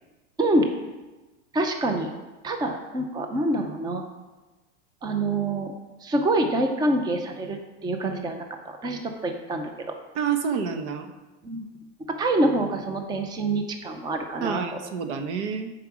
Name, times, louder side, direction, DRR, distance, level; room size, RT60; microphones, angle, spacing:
voice 1, 1.5-2.1 2.4-4.0 5.0-5.7 6.0-7.6 7.8-9.7 11.4-11.7 12.2-14.6, right 1 dB, 10° right, 5 dB, 0.6 m, -26 dB
voice 2, 10.1-11.1 14.4-15.7, right 6 dB, 70° right, 7 dB, 1.1 m, -28 dB
8.5 x 4.8 x 6.2 m, 1.2 s
supercardioid pair, 135°, 36 cm